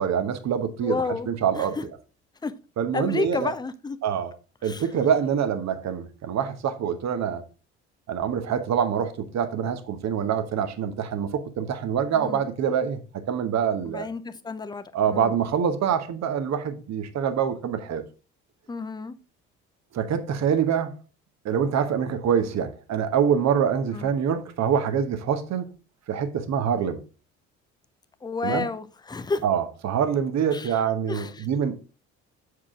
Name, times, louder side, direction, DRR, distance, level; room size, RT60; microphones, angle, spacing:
voice 1, 0.0-1.8 2.8-3.5 4.0-4.3 4.6-7.4 8.1-13.0 13.3-14.1 14.9-18.0 19.9-20.9 21.4-25.7 26.1-27.0 28.4-28.7 29.4-31.8, right 8 dB, 50° right, 1.1 m, -25 dB
voice 2, 0.8-1.9 2.4-2.5 2.9-4.0 4.6-4.8 12.1-12.5 13.9-15.3 18.7-19.1 23.9-24.1 28.2-29.4 30.5-30.8 31.1-31.5, left 4 dB, 10° left, 0.6 m, -31 dB
7.3 x 4.8 x 3.7 m
hypercardioid pair, 55°, 36 cm